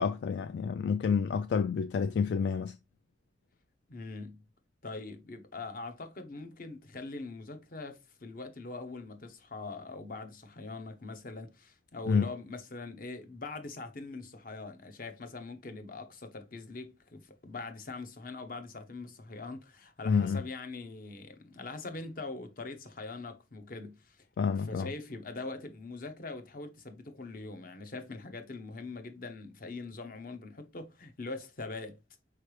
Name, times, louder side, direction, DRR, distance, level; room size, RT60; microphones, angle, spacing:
voice 1, 0.0-2.8 12.1-12.3 20.1-20.4 24.4-24.9, left 6 dB, 75° left, 0.3 m, -29 dB
voice 2, 3.9-4.4 4.8-24.2 24.6-32.0, left 3 dB, 55° left, 0.8 m, -42 dB
4.7 x 3.2 x 3.1 m
head